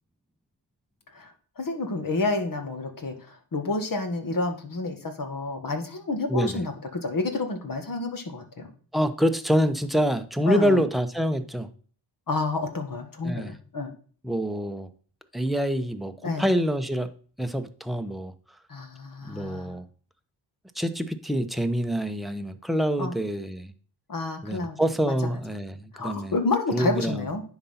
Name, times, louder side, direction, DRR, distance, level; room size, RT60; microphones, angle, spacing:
voice 1, 1.1-8.7 10.5-10.8 12.3-13.9 16.2-16.4 18.7-19.8 23.0-23.1 24.1-24.8 25.0-25.1 25.9-27.4, left 3 dB, 45° left, 6 dB, 1.8 m, -29 dB
voice 2, 6.3-6.6 8.9-11.7 13.2-13.6 14.2-14.9 15.3-17.1 17.4-18.3 19.2-19.8 20.8-23.7 24.4-26.3 26.7-27.3, equal, ahead, 8 dB, 0.9 m, -26 dB
9.8 x 4.0 x 5.7 m, 0.43 s
cardioid pair, 70°, 45 cm